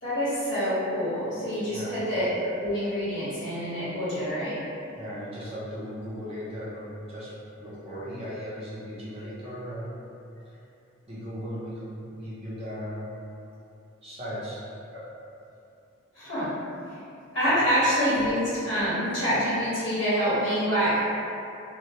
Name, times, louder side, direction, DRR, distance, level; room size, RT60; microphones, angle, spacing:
voice 1, 0.0-4.6 16.1-16.6 17.3-21.1, equal, 60° left, -13 dB, 1.1 m, -26 dB
voice 2, 1.7-2.0 4.9-7.3 7.6-10.0 11.1-13.1 14.0-14.6, equal, 30° right, -9 dB, 0.6 m, -37 dB
2.1 x 2.1 x 2.8 m, 2.6 s
head